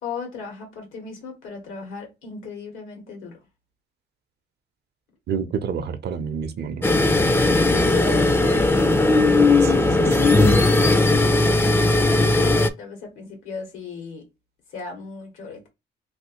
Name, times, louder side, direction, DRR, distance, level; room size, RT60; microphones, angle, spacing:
voice 1, 0.0-3.4 7.7-8.9 10.0-14.3 14.7-15.7, left 5 dB, 85° left, 1.7 m, -35 dB
voice 2, 5.3-6.9 9.6-10.4, right 6 dB, 55° right, 0.6 m, -29 dB
sound 1, 6.8-12.7, left 2 dB, 10° left, 0.4 m, -18 dB
3.2 x 2.7 x 2.9 m
cardioid pair, 90°, 20 cm